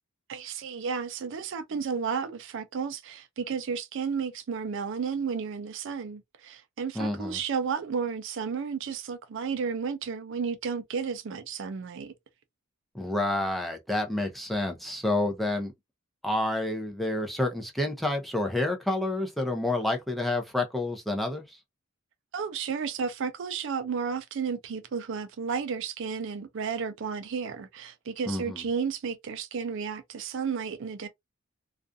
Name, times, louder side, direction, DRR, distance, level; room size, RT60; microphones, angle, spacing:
voice 1, 0.3-12.1 22.3-31.1, right 6 dB, 65° right, 0.4 m, -32 dB
voice 2, 6.9-7.4 12.9-15.7 16.2-21.6 28.3-28.6, left 2 dB, ahead, 0.5 m, -29 dB
2.4 x 2.3 x 2.5 m
head